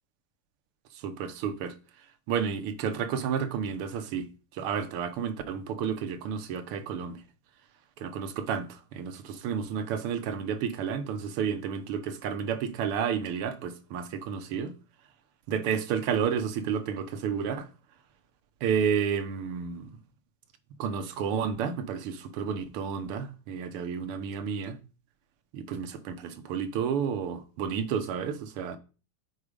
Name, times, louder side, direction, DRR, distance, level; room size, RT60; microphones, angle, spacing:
voice 1, 1.0-1.7 2.3-4.3 4.5-7.2 8.0-14.7 15.5-17.7 18.6-19.9 20.8-24.8 25.5-28.8, right 7 dB, 90° right, 1.8 m, -31 dB
8.5 x 4.9 x 5.1 m
omnidirectional pair, 2.4 m